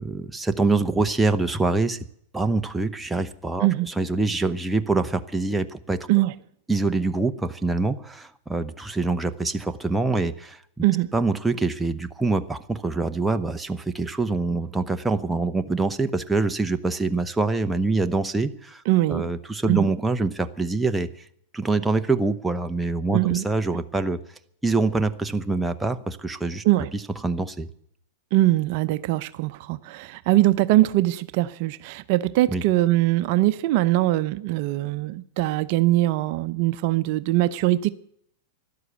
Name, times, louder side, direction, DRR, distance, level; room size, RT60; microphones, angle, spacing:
voice 1, 0.0-2.0 2.3-6.1 6.7-10.6 11.1-18.8 19.1-21.3 21.5-24.2 24.6-26.6 26.9-27.7 32.5-32.6, right 3 dB, 5° right, 0.9 m, -25 dB
voice 2, 18.9-19.3 19.7-19.9 23.1-23.4 26.6-26.9 28.3-37.9, right 16 dB, 55° right, 0.7 m, -22 dB
12.5 x 11.5 x 8.2 m
hypercardioid pair, 120°, 0 cm